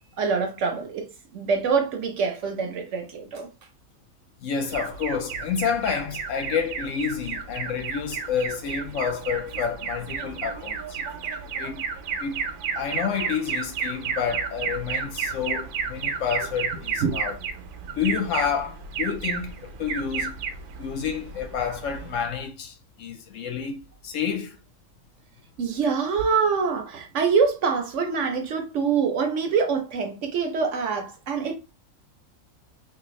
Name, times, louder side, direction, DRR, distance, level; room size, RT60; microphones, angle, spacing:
voice 1, 0.2-3.5 17.0-17.3 25.6-31.6, right 5 dB, 65° right, 0.9 m, -25 dB
voice 2, 4.4-11.0 11.6-11.9 12.2-12.4 12.8-17.4 17.9-20.4 20.8-24.6, left 7 dB, 65° left, 0.8 m, -29 dB
Alarm, 4.7-22.3, right 6 dB, 85° right, 1.2 m, -32 dB
3.4 x 2.7 x 3.1 m
omnidirectional pair, 1.6 m